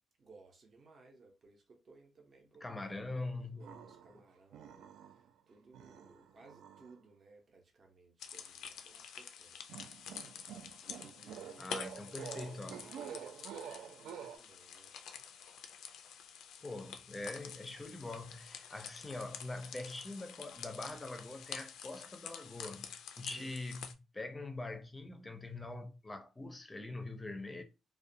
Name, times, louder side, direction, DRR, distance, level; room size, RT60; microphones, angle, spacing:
voice 1, 0.2-9.6 10.8-11.9 12.3-14.9 23.3-23.6, right 3 dB, 45° right, 0.6 m, -60 dB
voice 2, 2.6-3.8 11.6-12.8 16.6-27.6, left 2 dB, 20° left, 0.5 m, -43 dB
sound 1, 3.6-4.2 4.5-5.3 5.7-6.9 9.7-14.4, right 8 dB, 85° right, 0.3 m, -48 dB
sound 2, 8.2-23.9, left 7 dB, 80° left, 0.3 m, -48 dB
2.3 x 2.1 x 2.6 m
cardioid pair, 90°, 0 cm